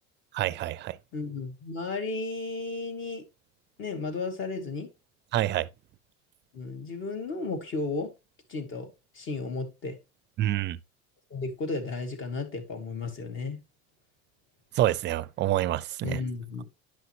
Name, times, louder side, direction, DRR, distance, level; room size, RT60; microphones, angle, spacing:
voice 1, 0.3-1.0 5.3-5.7 10.4-10.8 14.8-16.2, right 14 dB, 35° right, 0.5 m, -27 dB
voice 2, 1.1-3.2 3.8-4.9 6.5-8.1 8.5-10.0 11.3-13.6 16.0-16.6, left 3 dB, 40° left, 2.4 m, -34 dB
10.5 x 5.5 x 3.0 m
supercardioid pair, 140°, 33 cm